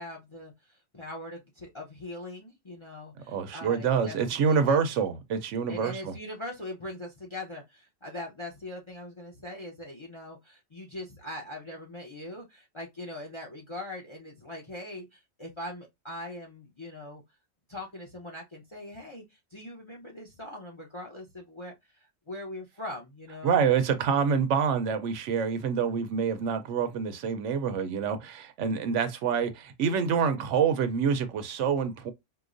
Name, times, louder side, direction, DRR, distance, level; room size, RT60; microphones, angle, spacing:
voice 1, 0.0-4.8 5.7-17.2 17.7-23.7, left 1 dB, 30° left, 0.7 m, -41 dB
voice 2, 3.3-6.1 23.4-32.1, right 6 dB, 90° right, 1.0 m, -27 dB
4.8 x 2.0 x 2.5 m
omnidirectional pair, 1.2 m